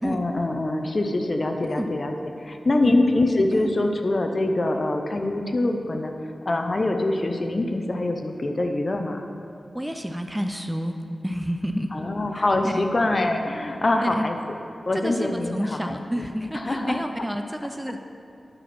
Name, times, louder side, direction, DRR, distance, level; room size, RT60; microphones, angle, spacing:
voice 1, 0.0-6.1 6.5-9.2 11.9-14.4 14.9-16.0 16.5-17.0, left 2 dB, 45° left, 4 dB, 0.7 m, -24 dB
voice 2, 9.7-11.0 11.2-12.1 12.3-12.9 14.0-14.3 14.9-18.0, equal, 10° right, 5 dB, 0.4 m, -30 dB
11.0 x 4.3 x 5.9 m, 2.5 s
wide cardioid pair, 80°, 0 cm